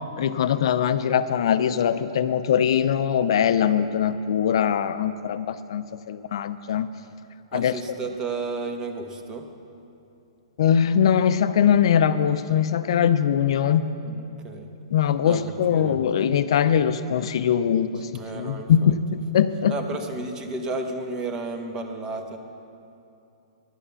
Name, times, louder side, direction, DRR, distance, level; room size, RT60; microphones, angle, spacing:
voice 1, 0.2-6.9 7.5-7.7 10.6-14.0 14.9-18.1 18.3-19.8, left 8 dB, 65° left, 12 dB, 0.5 m, -22 dB
voice 2, 7.5-9.5 14.0-14.7 15.2-16.0 18.1-18.9 19.7-22.4, right 3 dB, 25° right, 5 dB, 1.1 m, -33 dB
11.0 x 8.8 x 6.9 m, 2.7 s
hypercardioid pair, 135°, 3 cm